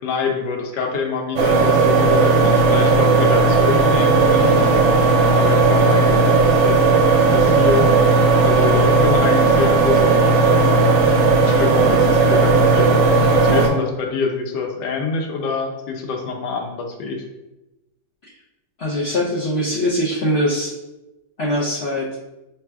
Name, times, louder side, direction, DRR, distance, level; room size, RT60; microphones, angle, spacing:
voice 1, 0.0-4.7 5.3-6.8 7.3-7.9 8.4-11.0 11.4-17.2, left 5 dB, 90° left, 3 dB, 1.3 m, -25 dB
sound 1, 1.4-13.7, right 3 dB, 75° right, 1.3 m, -15 dB
voice 2, 18.8-20.7 21.4-22.1, equal, 70° left, -6 dB, 0.6 m, -22 dB
4.7 x 3.2 x 2.3 m, 0.98 s
omnidirectional pair, 1.8 m